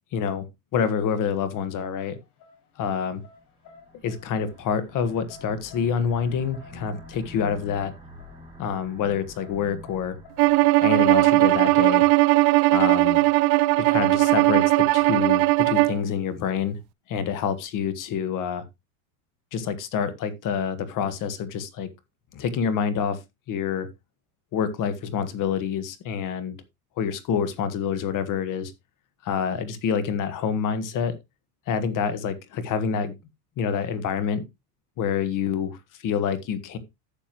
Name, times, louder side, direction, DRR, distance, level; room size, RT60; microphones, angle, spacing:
voice 1, 0.1-2.2 2.8-3.2 4.0-7.9 8.6-10.2 10.8-12.1 12.7-13.2 13.8-14.6 14.9-16.8 17.1-18.7 19.5-21.9 22.3-23.2 23.5-23.9 24.5-26.6 27.0-28.7 29.2-31.2 31.7-33.2 33.6-34.4 35.0-36.8, left 7 dB, 40° left, 1.6 m, -27 dB
sound 1, 2.0-11.9, left 4 dB, 60° left, 5.8 m, -52 dB
sound 2, 3.4-12.0, left 1 dB, 10° right, 6.2 m, -47 dB
Bowed string instrument, 10.4-16.0, right 21 dB, 55° right, 0.6 m, -18 dB
12.0 x 7.0 x 3.1 m
supercardioid pair, 130°, 46 cm